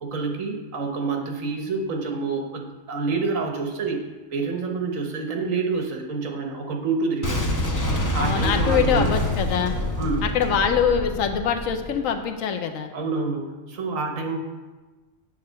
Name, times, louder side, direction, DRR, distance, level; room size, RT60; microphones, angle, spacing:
voice 1, 0.0-4.0 4.3-7.4 8.1-9.2 10.0-10.3 12.9-14.4, right 4 dB, 70° right, 2 dB, 1.4 m, -27 dB
Boom, 7.2-12.1, left 1 dB, 20° left, 0.5 m, -26 dB
voice 2, 8.2-9.8 10.2-12.9, left 7 dB, 75° left, 6 dB, 1.1 m, -24 dB
7.9 x 3.5 x 6.6 m, 1.2 s
omnidirectional pair, 1.4 m